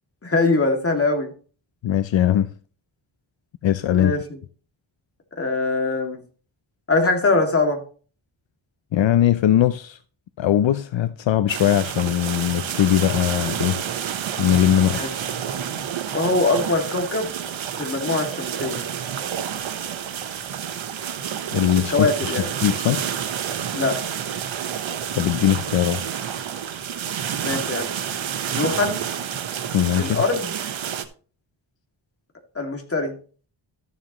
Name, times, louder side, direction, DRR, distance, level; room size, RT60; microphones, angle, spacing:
voice 1, 0.2-1.3 3.9-4.4 5.4-6.2 6.9-7.8 14.9-15.1 16.1-17.3 17.8-18.8 21.9-22.5 23.7-24.0 27.4-27.9 28.5-29.0 30.0-30.5 32.6-33.2, left 3 dB, 30° left, 2.3 m, -22 dB
voice 2, 1.8-2.5 3.6-4.1 8.9-10.0 10.4-13.8 14.4-15.0 21.5-22.1 22.6-23.0 25.1-26.0 29.7-30.2, left 11 dB, 75° left, 0.6 m, -20 dB
sound 1, 11.5-31.0, right 8 dB, 80° right, 1.2 m, -29 dB
13.5 x 7.3 x 3.0 m
wide cardioid pair, 130°, 46 cm